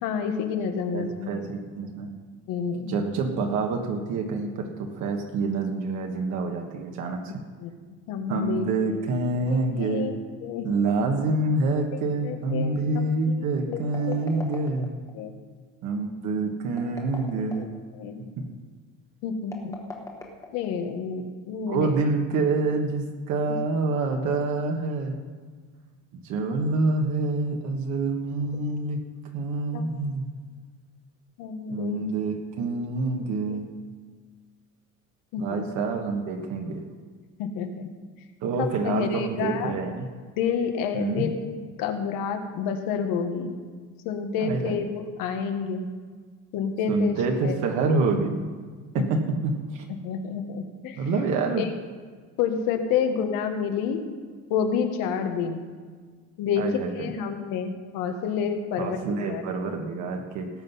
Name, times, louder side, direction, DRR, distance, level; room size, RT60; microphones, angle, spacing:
voice 1, 0.0-1.3 2.5-3.0 7.6-7.7 8.1-9.0 9.8-10.1 10.4-10.7 12.2-13.8 14.1-14.4 14.8-14.9 15.1-15.3 17.6-17.7 18.0-18.3 19.2-19.8 20.5-21.9 29.7-29.9 31.4-32.0 33.5-33.6 35.3-35.6 37.4-37.9 38.6-39.7 40.4-41.4 41.8-43.6 44.1-45.9 46.5-47.2 47.4-47.6 49.0-49.1 50.0-51.1 51.6-51.7 52.4-54.0 54.5-55.6 56.4-56.6 56.9-59.4, left 6 dB, 80° left, 5 dB, 1.6 m, -29 dB
voice 2, 0.9-2.1 2.9-7.3 8.3-10.1 10.6-15.0 15.8-17.7 18.4-18.5 21.7-25.1 26.1-29.0 29.3-30.2 31.7-33.7 35.4-36.8 38.4-40.1 40.9-41.3 44.4-44.8 46.9-48.5 48.9-49.8 51.0-51.6 56.6-57.1 58.8-60.5, right 3 dB, 60° right, 2 dB, 1.5 m, -27 dB
sound 1, 13.7-15.1 16.7-17.8 19.4-21.0, left 3 dB, 10° left, 1.3 m, -41 dB
18.0 x 7.7 x 5.6 m, 1.5 s
cardioid pair, 180°, 33 cm